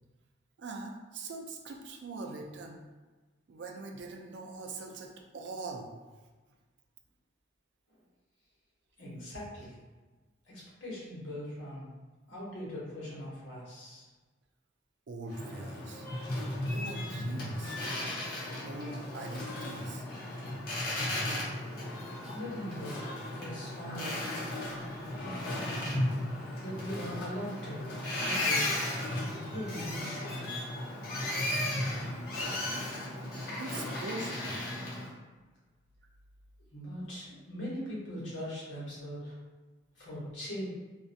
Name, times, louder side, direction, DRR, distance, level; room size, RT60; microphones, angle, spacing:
voice 1, 0.6-2.8 3.5-5.9 15.1-16.1 16.7-17.8 18.6-20.1 30.5-30.7 32.3-32.9 33.6-34.6, right 3 dB, 60° right, 2 dB, 0.3 m, -42 dB
voice 2, 9.0-9.7 10.4-11.9 12.3-14.1 22.2-23.0 23.3-24.3 25.2-26.0 26.6-28.7 29.4-30.6 36.7-39.4 39.9-40.7, equal, 70° left, -7 dB, 1.0 m, -41 dB
Boat Water vehicle, 15.3-35.1, left 1 dB, 50° left, 0.6 m, -35 dB
2.4 x 2.1 x 2.6 m, 1.3 s
head